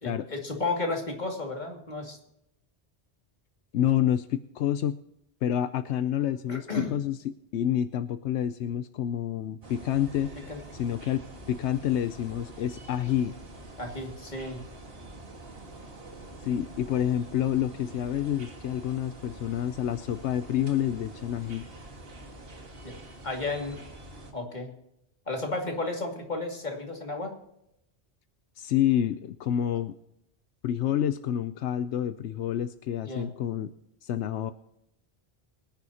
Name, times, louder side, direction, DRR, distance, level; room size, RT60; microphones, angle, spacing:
voice 1, 0.0-2.2 6.5-6.9 10.5-10.6 13.8-14.6 22.8-22.9 23.2-23.8 24.3-24.7 25.3-27.4 33.0-33.3, left 3 dB, 40° left, 1 dB, 2.6 m, -33 dB
voice 2, 3.7-5.0 5.4-10.3 10.7-11.2 11.5-13.3 16.4-21.7 28.6-29.9 30.6-33.7 34.0-34.5, left 10 dB, 85° left, 11 dB, 0.9 m, -28 dB
sound 1, 9.6-24.3, right 2 dB, 60° right, 2.1 m, -46 dB
23.5 x 10.5 x 2.9 m, 0.81 s
omnidirectional pair, 1.1 m